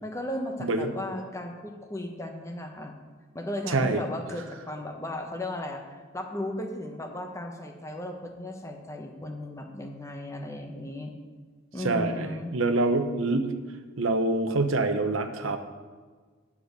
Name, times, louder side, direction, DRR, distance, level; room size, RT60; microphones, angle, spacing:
voice 1, 0.0-2.9 3.3-5.8 6.1-11.1 11.7-12.5, left 1 dB, 15° left, 3 dB, 1.0 m, -35 dB
voice 2, 0.6-0.9 3.7-4.0 11.8-13.5 14.0-15.6, right 2 dB, 85° right, 8 dB, 0.9 m, -26 dB
9.8 x 7.2 x 6.6 m, 1.5 s
head